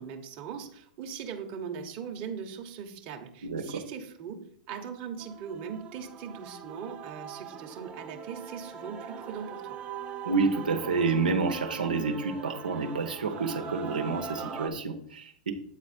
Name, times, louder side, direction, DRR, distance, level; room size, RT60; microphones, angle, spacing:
voice 1, 0.0-9.8, right 7 dB, 40° right, 3 dB, 1.1 m, -40 dB
voice 2, 3.4-3.8 10.2-15.5, right 4 dB, 85° right, 3 dB, 0.9 m, -29 dB
Male singing / Female singing / Musical instrument, 5.2-14.7, right 7 dB, 25° right, 0.7 m, -41 dB
8.2 x 4.2 x 4.3 m, 0.66 s
hypercardioid pair, 115°, 5 cm